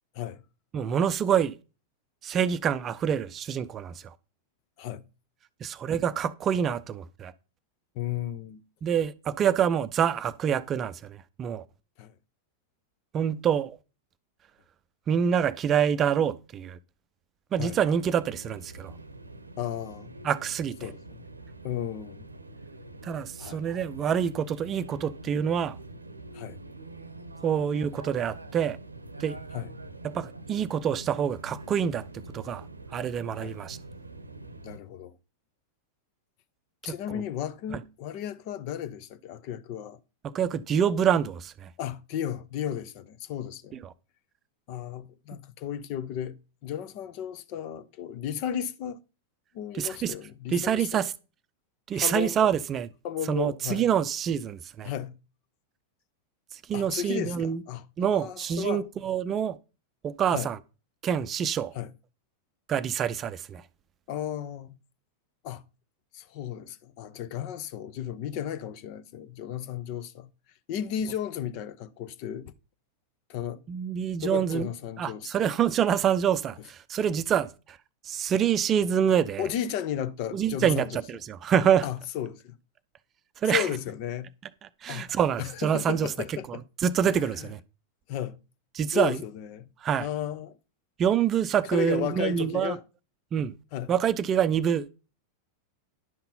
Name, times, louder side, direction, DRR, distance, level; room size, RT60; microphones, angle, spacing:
voice 1, 0.7-1.5 2.2-4.1 5.6-7.3 8.8-11.6 13.1-13.8 15.1-16.8 17.5-18.9 20.2-20.9 23.0-25.8 27.4-28.8 29.2-29.4 30.0-32.0 32.3-32.6 32.9-33.8 36.8-37.2 40.2-41.7 49.7-50.1 50.5-51.1 51.9-52.9 53.3-54.9 56.5-57.6 58.0-59.6 60.0-60.6 61.0-61.7 62.7-63.6 73.7-74.7 75.0-77.8 78.0-79.5 80.3-81.9 83.4-83.7 84.8-86.1 86.8-87.6 88.7-89.2 89.8-90.1 91.0-92.8 93.3-93.5 93.9-94.9, right 8 dB, 30° right, 0.6 m, -26 dB
voice 2, 7.9-8.6 12.0-12.1 17.6-17.8 19.6-20.1 20.8-21.2 21.6-22.3 23.4-23.6 26.3-26.6 29.5-29.7 33.4-33.6 34.6-35.1 36.8-40.0 41.8-43.8 44.7-46.4 46.6-49.0 49.5-51.1 51.9-52.4 53.0-53.9 54.8-55.1 56.7-57.8 58.1-58.8 60.3-60.5 61.7-61.9 64.1-64.7 65.4-65.6 66.1-70.3 70.7-72.5 73.3-73.6 74.2-75.5 79.4-81.0 81.8-82.6 83.5-84.3 84.9-85.1 85.4-86.6 87.0-87.5 88.1-88.4 88.9-89.7 90.0-90.6 91.7-92.8 93.7-93.9, left 10 dB, 45° left, 0.9 m, -34 dB
sound 1, 17.6-34.8, right 2 dB, 80° right, 0.9 m, -45 dB
11.0 x 5.8 x 5.4 m
figure-of-eight pair, 90°, 0 cm